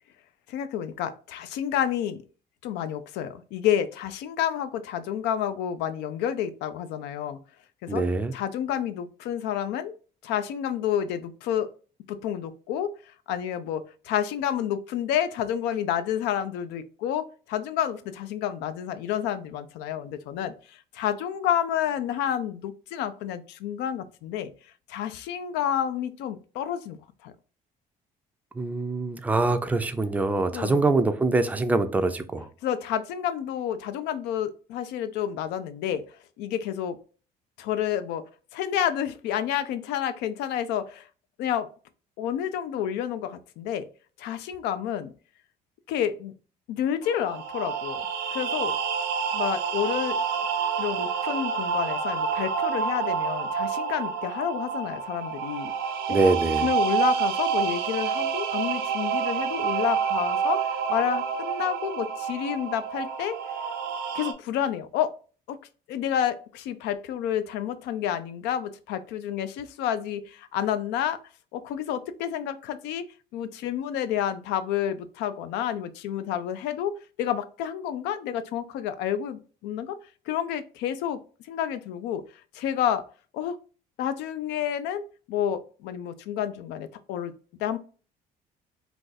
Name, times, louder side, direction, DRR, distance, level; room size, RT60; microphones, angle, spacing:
voice 1, 0.5-2.2 2.6-7.4 7.8-8.0 8.3-9.9 10.2-11.7 12.1-12.9 13.3-24.5 24.9-27.3 30.5-30.9 32.6-36.0 36.4-37.0 37.6-38.2 38.5-41.1 41.4-41.7 42.2-43.9 44.2-45.1 45.9-46.3 46.7-48.0 48.3-48.8 49.3-50.2 50.8-55.7 56.1-56.2 56.6-63.4 64.1-65.1 65.5-65.6 65.9-71.2 71.5-73.1 73.3-80.0 80.3-81.2 81.5-82.2 82.5-83.0 83.3-83.6 84.0-85.0 85.3-87.3 87.6-87.8, left 10 dB, 90° left, 12 dB, 0.4 m, -29 dB
voice 2, 7.9-8.3 28.6-32.5 56.1-56.7, right 3 dB, 10° right, 9 dB, 0.3 m, -24 dB
sound 1, 47.0-64.3, right 6 dB, 85° right, 0.5 m, -28 dB
2.5 x 2.3 x 3.9 m, 0.38 s
cardioid pair, 110°, 17 cm